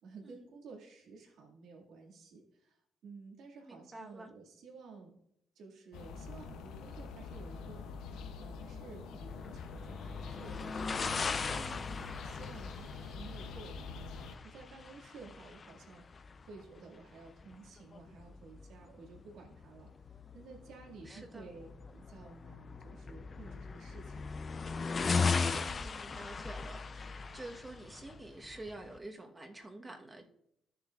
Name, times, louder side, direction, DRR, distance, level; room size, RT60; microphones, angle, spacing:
voice 1, 0.0-5.2 5.6-7.9 8.4-16.1 16.5-19.9 20.3-24.3, right 4 dB, 80° right, 2.0 m, -53 dB
voice 2, 3.7-4.3 11.6-12.1 21.1-21.5 25.6-30.3, right 2 dB, 20° right, 1.1 m, -48 dB
sound 1, 5.9-14.4, left 5 dB, 85° left, 0.7 m, -45 dB
sound 2, 9.3-29.0, left 4 dB, 40° left, 0.5 m, -39 dB
13.0 x 6.8 x 2.4 m
cardioid pair, 90°, 0 cm